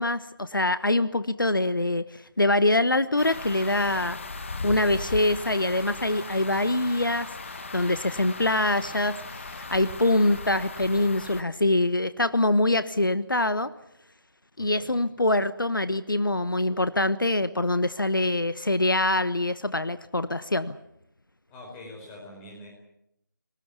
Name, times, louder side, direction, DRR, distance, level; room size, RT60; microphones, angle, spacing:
voice 1, 0.0-4.2 4.6-7.3 7.7-9.2 9.5-13.7 14.6-20.7, left 2 dB, 70° left, 14 dB, 1.2 m, -24 dB
sound 1, 3.2-11.4, left 3 dB, 35° left, 1.6 m, -37 dB
voice 2, 14.6-15.0 21.5-22.7, left 1 dB, 10° left, -1 dB, 4.6 m, -44 dB
24.5 x 19.5 x 8.3 m, 0.80 s
figure-of-eight pair, 160°, 11 cm